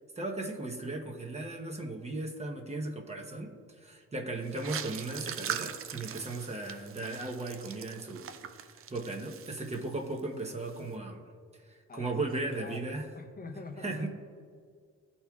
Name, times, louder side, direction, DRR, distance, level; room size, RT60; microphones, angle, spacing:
voice 1, 0.2-3.5 3.8-8.3 8.9-11.2 11.5-13.0 13.8-14.1, right 2 dB, 20° right, 2 dB, 0.9 m, -36 dB
sound 1, 4.5-10.2 10.4-10.8, right 9 dB, 45° right, 0.5 m, -41 dB
voice 2, 13.1-14.1, left 3 dB, 30° left, 5 dB, 0.7 m, -44 dB
12.5 x 4.3 x 2.3 m, 2.1 s
cardioid pair, 90°, 30 cm